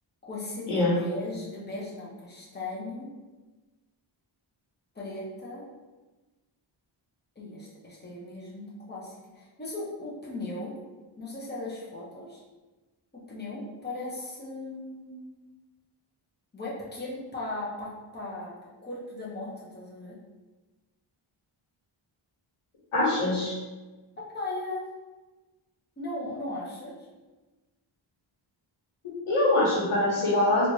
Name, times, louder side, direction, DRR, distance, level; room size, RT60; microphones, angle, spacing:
voice 1, 0.2-0.7 1.0-3.1 4.9-5.7 7.4-10.7 11.2-12.4 13.3-15.4 16.5-18.5 18.8-20.2 24.2-24.8 26.0-26.9, left 2 dB, 20° left, -6 dB, 1.0 m, -37 dB
voice 2, 22.9-23.6 29.0-30.7, left 1 dB, 85° left, -5 dB, 1.2 m, -24 dB
3.3 x 2.6 x 3.2 m, 1.2 s
wide cardioid pair, 75°, 49 cm